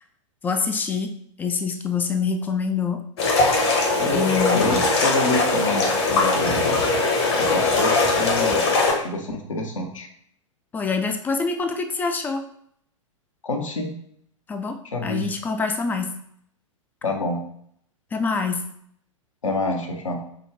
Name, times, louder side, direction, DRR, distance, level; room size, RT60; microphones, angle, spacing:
voice 1, 0.4-1.1 1.4-3.0 4.1-4.9 10.7-12.4 14.5-14.8 15.0-16.1 18.1-18.6, left 5 dB, 10° left, 6 dB, 0.3 m, -25 dB
sound 1, 3.2-8.9, left 3 dB, 55° left, 1.1 m, -20 dB
voice 2, 4.5-6.7 7.4-8.6 8.9-10.1 13.4-14.0 14.9-15.3 17.0-17.4 19.4-20.2, left 2 dB, 70° left, 3 dB, 0.9 m, -27 dB
5.1 x 2.3 x 3.3 m, 0.67 s
figure-of-eight pair, 100°, 17 cm